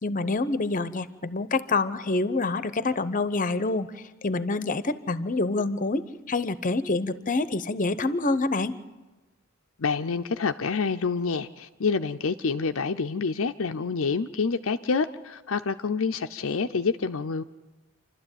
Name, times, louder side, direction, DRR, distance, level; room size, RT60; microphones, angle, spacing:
voice 1, 0.0-3.9 4.2-8.8, left 3 dB, 40° left, 14 dB, 0.9 m, -27 dB
voice 2, 9.8-17.4, left 4 dB, 65° left, 7 dB, 0.6 m, -27 dB
27.5 x 12.5 x 9.0 m, 1.1 s
head